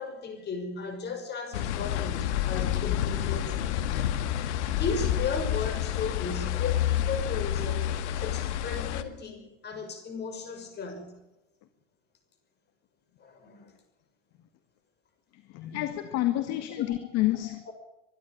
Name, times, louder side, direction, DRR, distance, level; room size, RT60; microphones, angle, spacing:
voice 1, 0.0-4.0 4.7-7.9 8.2-11.2 13.2-13.7 15.6-15.7 16.8-16.9 17.7-17.8, left 4 dB, 25° left, 7 dB, 5.9 m, -36 dB
sound 1, 1.5-9.0, left 11 dB, 65° left, 1.8 m, -29 dB
voice 2, 15.5-17.7, left 15 dB, 45° left, 10 dB, 1.7 m, -29 dB
24.5 x 12.0 x 9.0 m, 1.0 s
hypercardioid pair, 110°, 37 cm